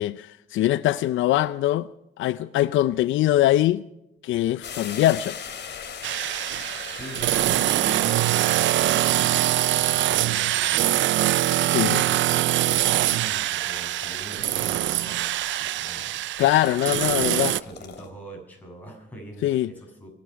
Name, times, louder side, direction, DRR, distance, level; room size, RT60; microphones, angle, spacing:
voice 1, 0.0-1.9 2.2-3.8 4.2-5.4 11.7-12.0 16.4-17.5 19.4-19.7, left 14 dB, 75° left, 0.5 m, -22 dB
sound 1, 4.6-18.1, left 7 dB, 60° left, 2.8 m, -42 dB
sound 2, 6.0-17.6, right 14 dB, 70° right, 0.5 m, -23 dB
voice 2, 6.9-10.9 13.1-16.2 17.5-20.1, right 1 dB, 10° left, 7.1 m, -42 dB
25.5 x 9.6 x 5.8 m
cardioid pair, 90°, 20 cm